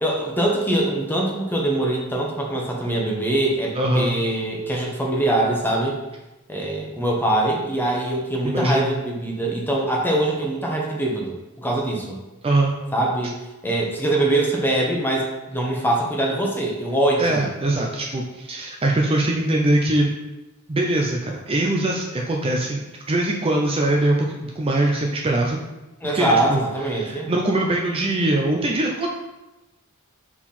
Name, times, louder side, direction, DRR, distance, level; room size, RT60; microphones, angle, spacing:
voice 1, 0.0-6.0 6.5-12.2 12.9-17.5 26.0-27.3, right 1 dB, 10° left, -2 dB, 1.1 m, -23 dB
voice 2, 3.7-4.1 8.4-8.8 12.4-12.7 17.2-20.1 20.7-22.8 23.1-25.6 26.1-26.6 26.9-29.1, right 1 dB, 25° right, 0 dB, 0.5 m, -22 dB
5.7 x 4.5 x 4.3 m, 1.0 s
head